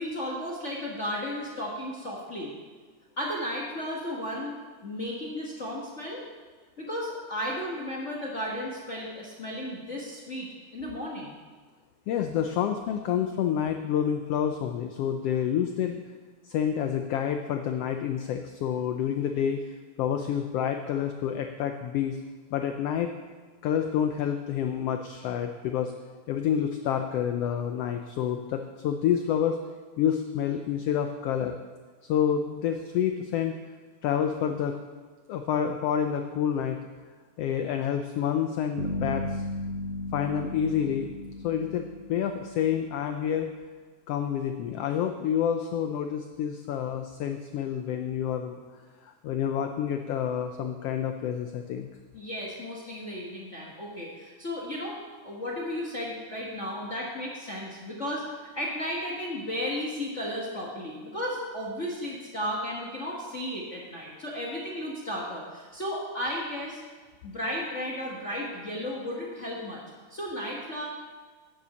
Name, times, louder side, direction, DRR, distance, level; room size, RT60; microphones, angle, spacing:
voice 1, 0.0-2.5 3.2-4.6 4.8-6.2 6.8-10.5 10.7-11.3 52.1-55.0 55.2-58.2 58.5-66.8 67.2-69.8 70.1-70.8, equal, 50° left, -4 dB, 0.8 m, -34 dB
voice 2, 12.1-16.0 16.4-19.6 20.0-22.2 22.5-23.1 23.6-25.9 26.3-29.6 30.0-31.6 32.1-33.6 34.0-34.7 35.3-36.8 37.4-39.4 40.1-41.1 41.4-43.5 44.1-48.6 49.0-51.9, left 9 dB, 85° left, 6 dB, 1.3 m, -28 dB
sound 1, 38.8-42.7, left 1 dB, 55° right, 2.2 m, -35 dB
9.6 x 7.1 x 7.1 m, 1.4 s
omnidirectional pair, 3.4 m